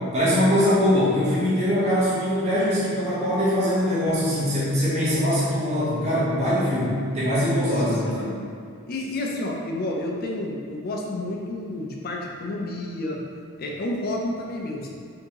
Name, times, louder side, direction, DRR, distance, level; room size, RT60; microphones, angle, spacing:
voice 1, 0.1-8.3, equal, 30° right, -9 dB, 0.7 m, -22 dB
voice 2, 7.7-8.3 8.9-13.2 13.6-14.9, left 1 dB, 45° left, -1 dB, 0.4 m, -30 dB
3.5 x 2.7 x 2.9 m, 2.3 s
head